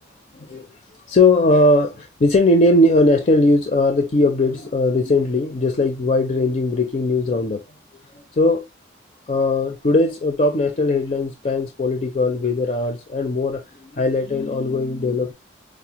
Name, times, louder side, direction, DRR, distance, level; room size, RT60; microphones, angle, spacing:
voice 1, 0.3-0.7 1.1-7.6 8.1-8.6 9.3-15.3, left 2 dB, 40° left, 0.4 m, -19 dB
4.8 x 2.0 x 2.8 m
head